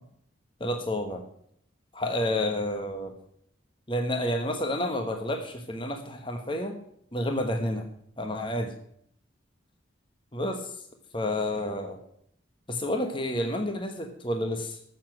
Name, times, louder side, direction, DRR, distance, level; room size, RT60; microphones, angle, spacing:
voice 1, 0.6-1.2 1.9-3.1 3.9-6.7 7.1-7.8 8.2-8.7 10.3-10.7 11.1-12.0 12.7-14.8, left 1 dB, 25° left, 4 dB, 1.2 m, -30 dB
14.0 x 7.0 x 6.1 m, 0.68 s
head